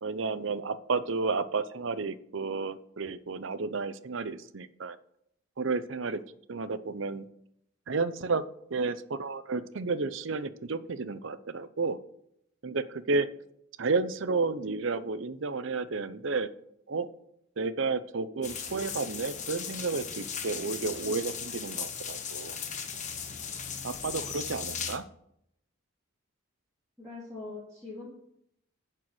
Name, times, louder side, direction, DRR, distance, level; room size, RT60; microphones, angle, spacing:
voice 1, 0.0-5.0 5.6-6.2 6.5-7.3 7.9-8.4 8.7-12.0 12.6-13.3 13.8-16.5 16.9-17.1 17.6-22.6 23.8-25.0, right 4 dB, 60° right, 14 dB, 0.6 m, -31 dB
sound 1, 18.4-25.0, left 7 dB, 35° left, 1.0 m, -37 dB
voice 2, 27.0-28.1, left 3 dB, 5° left, -10 dB, 3.3 m, -42 dB
11.0 x 4.5 x 7.8 m, 0.75 s
head